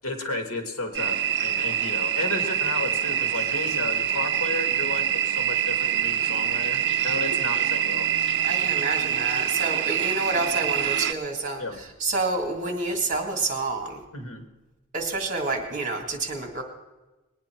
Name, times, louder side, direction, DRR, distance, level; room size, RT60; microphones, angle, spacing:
voice 1, 0.0-8.1 11.6-11.8 14.1-14.4, left 2 dB, 75° left, 5 dB, 1.8 m, -33 dB
sound 1, 0.9-11.1, right 9 dB, 55° right, 0.5 m, -25 dB
voice 2, 8.5-14.0 14.9-16.6, right 3 dB, 35° right, 3 dB, 2.0 m, -28 dB
20.0 x 9.5 x 4.5 m, 1.1 s
head